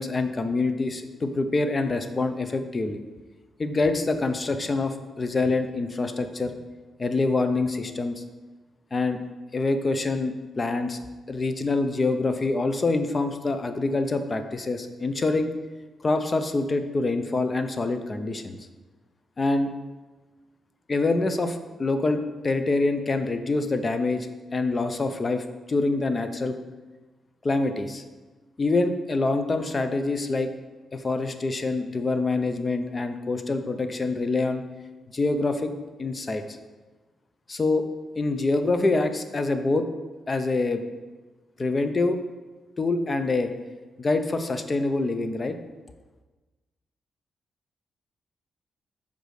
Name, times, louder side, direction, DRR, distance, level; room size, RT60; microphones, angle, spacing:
voice 1, 0.0-3.0 3.6-6.6 7.0-8.2 8.9-9.2 9.5-11.0 11.3-15.5 16.0-18.6 19.4-19.7 20.9-26.6 27.4-28.0 28.6-30.5 30.9-34.6 35.1-35.7 36.0-36.4 37.5-37.8 38.2-39.9 40.3-40.8 41.6-42.2 42.8-43.5 44.0-45.6, left 3 dB, 35° left, 8 dB, 0.7 m, -25 dB
5.2 x 5.0 x 6.5 m, 1.2 s
cardioid pair, 65°, 0 cm